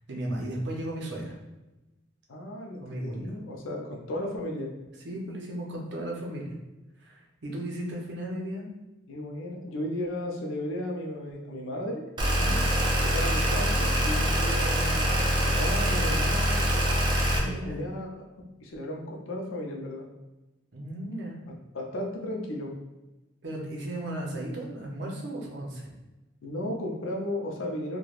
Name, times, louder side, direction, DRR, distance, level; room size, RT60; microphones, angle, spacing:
voice 1, 0.1-1.3 2.8-3.3 5.0-6.5 7.0-8.7 12.4-12.6 17.3-17.8 20.7-21.4 23.4-25.9, right 1 dB, 60° right, -1 dB, 0.6 m, -35 dB
voice 2, 2.3-4.7 9.1-12.1 13.0-16.7 17.4-18.1 18.4-20.1 21.7-22.7 26.4-28.0, left 1 dB, 90° left, 0 dB, 0.5 m, -35 dB
sound 1, 12.2-17.4, equal, 25° right, 0.4 m, -24 dB
3.2 x 2.2 x 2.4 m, 1.0 s
head